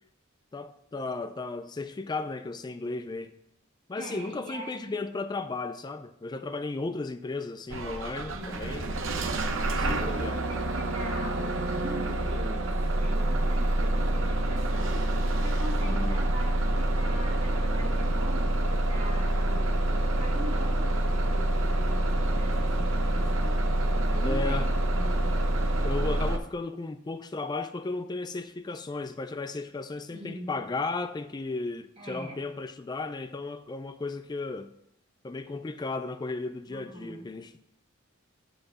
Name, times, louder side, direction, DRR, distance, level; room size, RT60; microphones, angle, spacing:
voice 1, 0.5-3.3 3.9-9.0 9.8-10.4 15.8-16.2 24.2-24.7 25.8-34.7 35.2-37.5, left 3 dB, 20° left, 0.3 m, -35 dB
voice 2, 4.0-5.0 8.3-8.8 9.8-15.1 15.4-19.7 20.1-23.7 24.1-25.4 30.1-30.6 32.0-32.4 36.7-37.3, equal, 30° right, 2.2 m, -42 dB
Bus / Engine starting, 7.7-26.4, right 1 dB, 65° right, 0.8 m, -27 dB
8.2 x 4.9 x 6.3 m
head